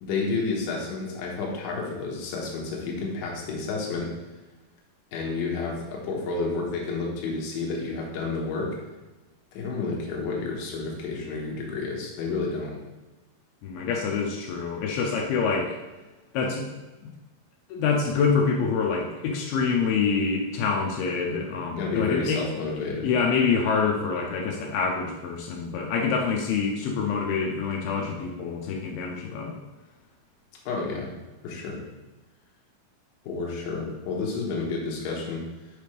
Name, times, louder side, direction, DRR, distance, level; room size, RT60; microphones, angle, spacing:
voice 1, 0.0-4.1 5.1-8.8 9.5-12.8 21.7-23.1 30.7-31.1 31.4-31.8 33.2-35.4, left 4 dB, 70° left, -2 dB, 2.6 m, -30 dB
voice 2, 13.6-15.8 16.3-16.7 17.7-22.4 23.0-29.6, left 5 dB, 85° left, -1 dB, 2.6 m, -26 dB
6.8 x 5.1 x 3.2 m, 1.2 s
omnidirectional pair, 4.4 m